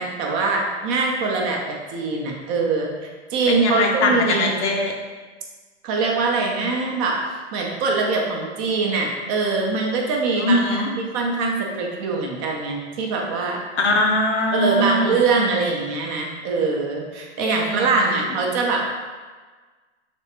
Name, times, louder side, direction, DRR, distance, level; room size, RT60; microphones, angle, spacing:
voice 1, 0.0-2.9 3.3-4.6 5.8-7.2 7.5-13.6 14.5-18.8, right 4 dB, 30° right, 0 dB, 0.5 m, -23 dB
voice 2, 3.5-4.9 10.4-10.9 13.8-15.1 17.4-17.9, left 2 dB, 70° left, 1 dB, 0.7 m, -21 dB
3.4 x 3.1 x 2.8 m, 1.4 s
hypercardioid pair, 115°, 35 cm